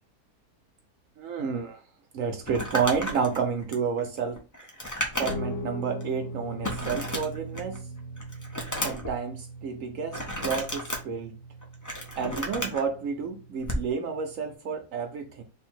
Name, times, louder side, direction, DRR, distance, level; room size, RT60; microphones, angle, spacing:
voice 1, 1.2-1.8 2.1-4.4 5.2-7.8 8.8-11.3 12.2-15.4, right 6 dB, 65° right, 1.0 m, -30 dB
Crumpling crinkling, 2.4-5.6 6.0-6.1 6.6-7.8 8.2-9.1 10.1-11.0 11.6-12.8 13.6-13.9, equal, 25° left, 0.4 m, -33 dB
Guitar, 5.3-14.5, right 1 dB, 50° left, 0.8 m, -40 dB
3.4 x 2.3 x 4.4 m
omnidirectional pair, 1.6 m